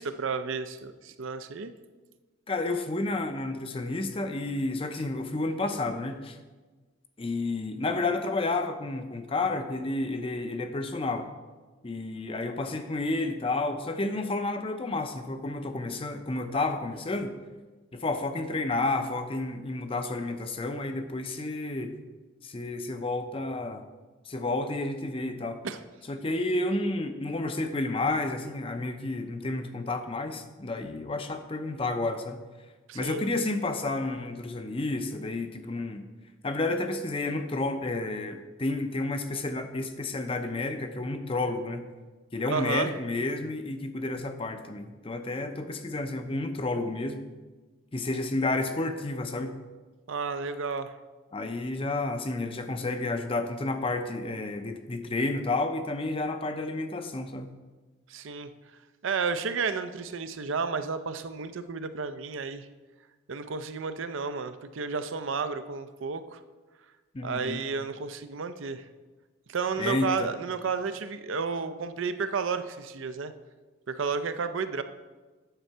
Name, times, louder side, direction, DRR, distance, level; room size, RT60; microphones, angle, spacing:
voice 1, 0.0-1.7 25.6-25.8 32.9-33.2 42.5-42.9 50.1-50.9 58.1-58.5 59.0-62.7 63.3-66.4 67.2-68.8 69.5-73.3 73.9-74.8, right 5 dB, 70° right, 10 dB, 0.5 m, -32 dB
voice 2, 2.5-6.4 7.2-11.3 11.8-17.3 17.9-21.9 22.4-23.9 24.3-25.6 26.1-32.4 32.9-36.1 36.4-41.9 42.3-47.2 47.9-49.5 51.3-57.5 67.1-67.6 69.8-70.3, left 2 dB, 25° left, 8 dB, 0.5 m, -31 dB
9.1 x 4.4 x 6.6 m, 1.3 s
head